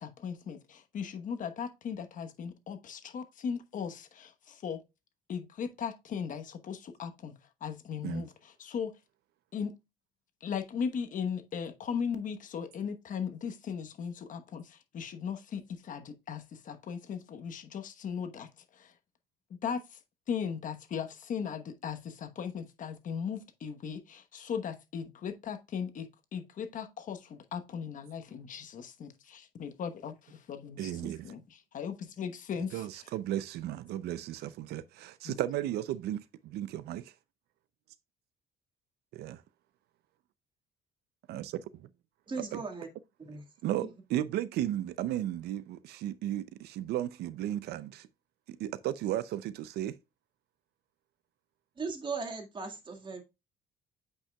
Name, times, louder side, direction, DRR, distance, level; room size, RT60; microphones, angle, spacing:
voice 1, 0.0-4.8 5.3-7.3 7.6-8.3 8.6-8.9 9.5-9.7 10.4-18.9 19.6-20.0 20.3-32.8 35.2-35.4, left 7 dB, 50° left, 1.1 m, -38 dB
voice 2, 30.8-31.3 32.6-37.1 39.1-39.4 41.3-41.9 42.5-42.6 43.6-48.1 48.5-50.0, right 12 dB, 75° right, 0.5 m, -35 dB
voice 3, 42.3-42.9 43.2-43.4 51.8-53.2, right 4 dB, 30° right, 1.8 m, -37 dB
8.6 x 5.5 x 2.3 m
cardioid pair, 110°, 17 cm